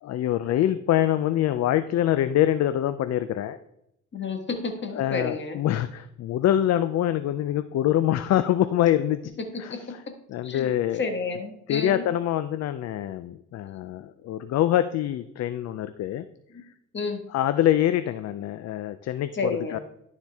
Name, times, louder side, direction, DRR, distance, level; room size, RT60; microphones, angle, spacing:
voice 1, 0.0-3.6 4.9-9.3 9.6-10.0 10.3-11.1 11.7-16.3 16.6-16.7 17.3-19.8, left 12 dB, 60° left, 12 dB, 0.5 m, -25 dB
voice 2, 4.1-5.6 9.7-10.1 10.4-10.7 10.9-12.0 16.5-16.6 16.9-17.2 19.3-19.8, left 4 dB, 40° left, 5 dB, 1.5 m, -31 dB
11.5 x 4.6 x 3.5 m, 0.79 s
cardioid pair, 90°, 30 cm